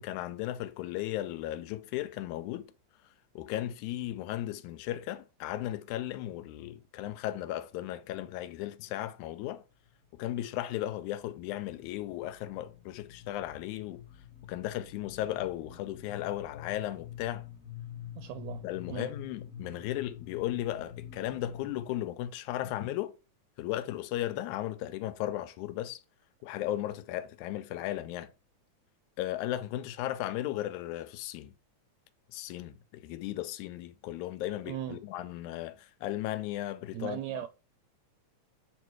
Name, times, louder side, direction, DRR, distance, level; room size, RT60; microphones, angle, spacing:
voice 1, 0.0-2.7 3.4-9.6 10.1-14.0 14.5-17.5 18.6-23.1 23.6-26.0 26.4-28.3 29.2-31.5 32.3-37.2, left 13 dB, 85° left, 2.0 m, -36 dB
sound 1, 9.2-9.6 9.9-21.8, left 9 dB, 45° left, 1.1 m, -47 dB
voice 2, 18.1-19.1 34.6-35.0 36.9-37.5, right 12 dB, 80° right, 1.6 m, -38 dB
8.0 x 3.0 x 4.6 m
omnidirectional pair, 3.4 m